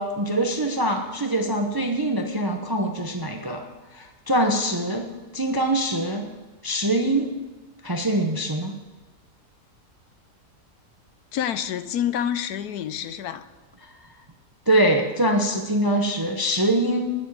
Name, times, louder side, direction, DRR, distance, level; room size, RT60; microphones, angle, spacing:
voice 1, 0.0-3.6 3.9-5.1 5.3-6.3 6.6-7.3 7.8-8.8 14.7-17.1, right 1 dB, 20° right, 3 dB, 0.8 m, -23 dB
voice 2, 11.3-13.5, left 9 dB, 90° left, 12 dB, 1.2 m, -28 dB
9.8 x 7.2 x 8.7 m, 1.2 s
omnidirectional pair, 1.6 m